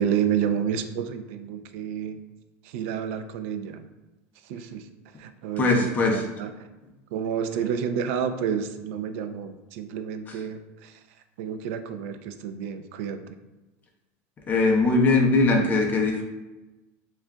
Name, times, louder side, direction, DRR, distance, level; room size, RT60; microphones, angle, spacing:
voice 1, 0.0-2.2 2.6-3.8 4.5-4.8 5.2-6.5 7.1-10.9 11.4-13.4, right 8 dB, 70° right, 8 dB, 0.4 m, -30 dB
voice 2, 5.6-6.2 10.3-10.4 14.5-16.2, left 3 dB, 25° left, 2 dB, 0.6 m, -21 dB
6.3 x 2.4 x 2.2 m, 1.1 s
supercardioid pair, 145°, 7 cm